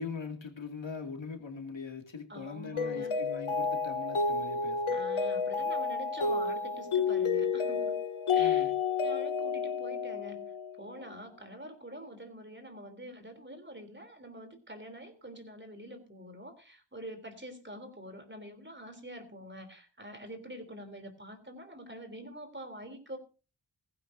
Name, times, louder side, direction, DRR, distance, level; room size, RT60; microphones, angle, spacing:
voice 1, 0.0-5.0 8.4-8.7, left 4 dB, 65° left, 4 dB, 2.6 m, -41 dB
voice 2, 2.3-3.2 4.9-7.9 8.3-23.2, equal, 25° right, 8 dB, 3.4 m, -46 dB
Mallet percussion, 2.8-10.9, left 5 dB, 90° left, 1.2 m, -30 dB
17.5 x 15.0 x 2.7 m, 0.33 s
wide cardioid pair, 70°, 48 cm